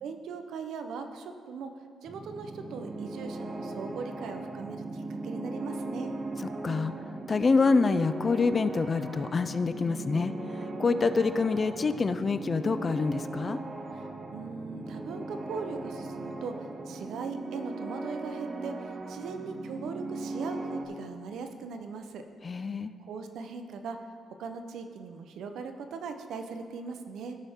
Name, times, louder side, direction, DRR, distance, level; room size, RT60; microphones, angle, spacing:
voice 1, 0.0-1.7 2.0-6.1 13.9-22.2 23.0-24.0 24.4-27.4, right 5 dB, 75° right, 6 dB, 0.8 m, -39 dB
sound 1, 2.1-20.8, right 2 dB, 35° right, 0.8 m, -38 dB
voice 2, 7.3-10.3 10.6-13.6 22.4-22.9, left 4 dB, 30° left, 12 dB, 0.4 m, -26 dB
16.5 x 5.6 x 3.6 m, 2.2 s
cardioid pair, 115°, 0 cm